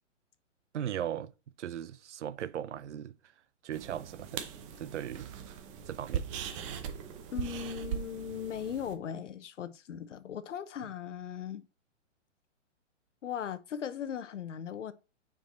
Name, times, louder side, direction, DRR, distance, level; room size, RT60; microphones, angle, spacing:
voice 1, 0.7-1.3 1.6-3.1 3.6-4.4 4.8-5.3 5.9-6.3, right 10 dB, 65° right, 0.6 m, -37 dB
sound 1, 3.7-8.9, right 8 dB, 25° right, 0.7 m, -40 dB
voice 2, 7.3-11.6 13.2-14.9, left 8 dB, 75° left, 0.9 m, -38 dB
6.0 x 4.7 x 4.2 m
hypercardioid pair, 145°, 37 cm